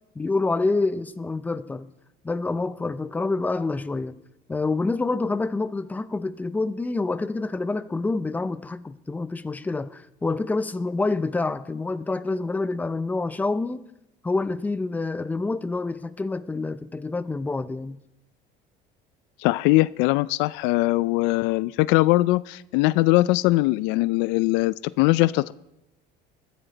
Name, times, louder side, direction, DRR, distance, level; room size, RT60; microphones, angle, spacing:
voice 1, 0.2-1.9 2.2-4.2 4.5-13.8 14.2-18.0, left 3 dB, 10° left, 0.5 m, -27 dB
voice 2, 19.4-25.5, left 19 dB, 85° left, 0.4 m, -21 dB
21.0 x 14.5 x 4.0 m
cardioid pair, 170°, 18 cm